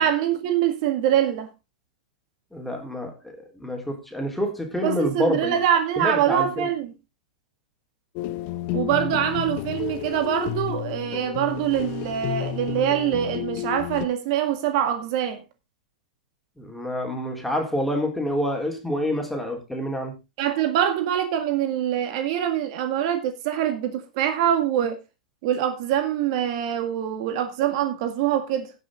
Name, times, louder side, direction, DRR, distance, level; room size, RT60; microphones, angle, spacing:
voice 1, 0.0-1.5 4.8-6.9 8.7-15.4 20.4-25.0 25.4-28.7, right 10 dB, 55° right, 1.9 m, -24 dB
voice 2, 2.5-5.6 6.0-6.7 16.6-20.2, left 1 dB, 5° left, 3.6 m, -27 dB
sound 1, 8.2-14.1, left 14 dB, 45° left, 1.0 m, -31 dB
17.5 x 6.4 x 3.7 m
hypercardioid pair, 120°, 4 cm